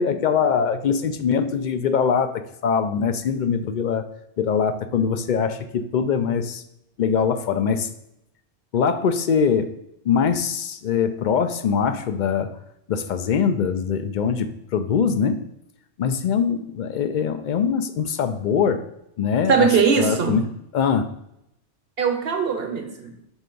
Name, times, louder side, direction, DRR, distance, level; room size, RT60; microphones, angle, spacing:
voice 1, 0.0-4.0 4.4-6.6 7.0-7.9 8.7-9.7 10.0-12.5 12.9-15.4 16.0-18.8 19.2-19.7 20.0-20.4 20.7-21.1, left 6 dB, 60° left, 9 dB, 0.5 m, -22 dB
voice 2, 19.5-20.4 22.0-23.1, right 5 dB, 60° right, 5 dB, 1.0 m, -20 dB
6.3 x 3.4 x 5.2 m, 0.80 s
omnidirectional pair, 1.2 m